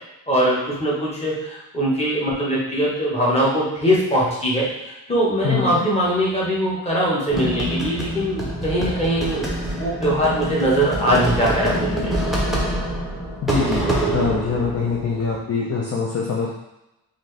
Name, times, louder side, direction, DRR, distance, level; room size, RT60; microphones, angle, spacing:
voice 1, 0.3-12.1, equal, 15° left, -6 dB, 1.0 m, -21 dB
voice 2, 5.4-5.9 13.4-13.8 14.1-16.5, left 5 dB, 40° left, -3 dB, 0.5 m, -23 dB
sound 1, 7.3-15.4, right 1 dB, ahead, 0.6 m, -25 dB
4.1 x 2.6 x 3.2 m, 0.91 s
wide cardioid pair, 160°, 42 cm